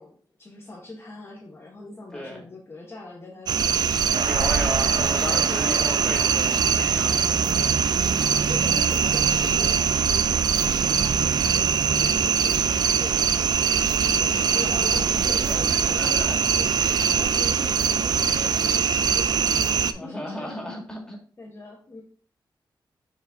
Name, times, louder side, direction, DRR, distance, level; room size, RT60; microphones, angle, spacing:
voice 1, 0.0-4.6 4.9-5.9 6.4-6.6 8.2-10.4 10.8-20.5 21.4-22.0, left 2 dB, 30° left, -4 dB, 1.3 m, -41 dB
voice 2, 2.1-2.4 4.2-7.5 14.1-15.0 15.5-15.6 15.9-16.4 16.7-17.2 19.9-21.2, equal, 10° left, -1 dB, 2.1 m, -35 dB
sound 1, 3.5-19.9, right 7 dB, 55° right, 0.4 m, -22 dB
sound 2, 4.1-15.1, right 4 dB, 75° right, 1.0 m, -32 dB
7.0 x 4.5 x 3.6 m, 0.43 s
wide cardioid pair, 175°, 8 cm